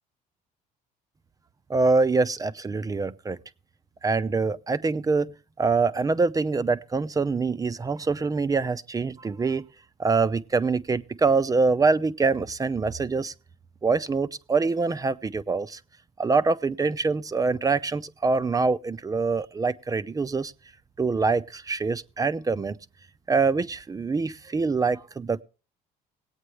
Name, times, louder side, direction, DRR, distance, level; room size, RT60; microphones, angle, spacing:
voice 1, 1.7-3.4 4.0-9.6 10.0-13.3 13.8-15.8 16.2-20.5 21.0-22.8 23.3-25.4, right 4 dB, 20° right, 0.5 m, -25 dB
19.5 x 8.7 x 3.2 m
cardioid pair, 110°, 17 cm